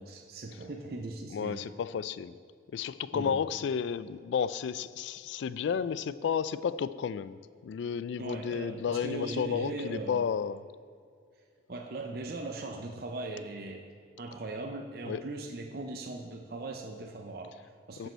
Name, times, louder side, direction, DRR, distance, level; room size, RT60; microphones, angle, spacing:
voice 1, 0.0-1.6 3.1-3.5 8.2-10.3 11.7-13.9 14.2-18.1, right 2 dB, 55° right, 2 dB, 0.6 m, -39 dB
voice 2, 1.3-2.3 2.7-7.4 7.6-10.7 15.1-15.2 18.0-18.1, left 7 dB, 75° left, 17 dB, 0.3 m, -32 dB
14.0 x 5.4 x 4.4 m, 2.2 s
head